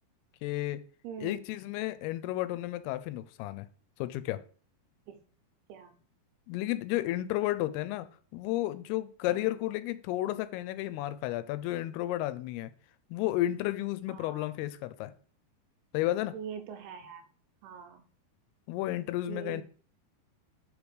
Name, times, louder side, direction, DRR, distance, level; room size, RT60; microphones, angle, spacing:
voice 1, 0.4-0.8 1.2-3.7 4.0-4.4 6.5-8.1 8.3-12.7 13.1-15.1 15.9-16.3 18.7-19.6, left 15 dB, 85° left, 13 dB, 2.5 m, -32 dB
voice 2, 1.0-1.4 5.1-5.2 5.7-6.0 9.3-9.5 14.1-14.5 16.3-17.3 17.6-18.1 19.3-19.6, right 7 dB, 80° right, 7 dB, 2.6 m, -43 dB
5.2 x 5.1 x 4.8 m, 0.43 s
omnidirectional pair, 4.5 m